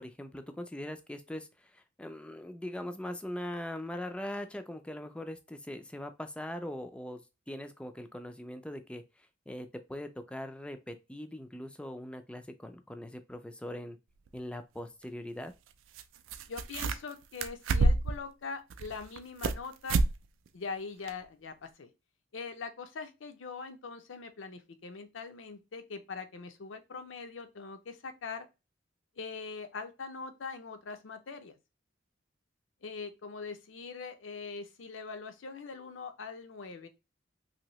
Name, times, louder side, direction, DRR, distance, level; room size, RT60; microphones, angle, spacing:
voice 1, 0.0-14.0 14.3-15.5, left 1 dB, 5° left, 0.3 m, -41 dB
sound 1, 14.3-14.4 16.0-16.1 16.3-17.1 17.4-18.2 18.7-19.6 19.9-20.1 20.5-20.6 21.1-21.2, right 3 dB, 85° right, 0.3 m, -28 dB
voice 2, 16.5-20.0 20.5-21.9 22.3-28.5 29.2-31.6 32.8-36.9, left 4 dB, 75° left, 0.5 m, -42 dB
2.9 x 2.7 x 3.0 m
head